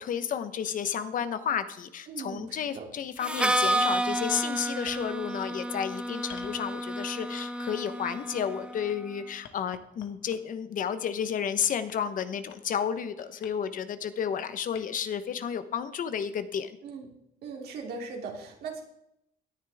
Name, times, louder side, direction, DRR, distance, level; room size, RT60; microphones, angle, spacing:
voice 1, 0.0-16.7, left 8 dB, 50° left, 11 dB, 1.1 m, -32 dB
voice 2, 2.1-2.8 16.8-17.1 17.4-18.8, right 4 dB, 70° right, 1 dB, 3.1 m, -39 dB
Harmonica, 3.2-8.9, right 1 dB, 5° right, 0.9 m, -30 dB
sound 1, 4.8-5.1 6.3-7.1 8.1-9.0 9.4-10.6 11.6-12.7 13.0-13.5 14.7-14.8, left 9 dB, 80° left, 1.5 m, -48 dB
17.0 x 10.0 x 3.6 m, 0.77 s
cardioid pair, 110°, 17 cm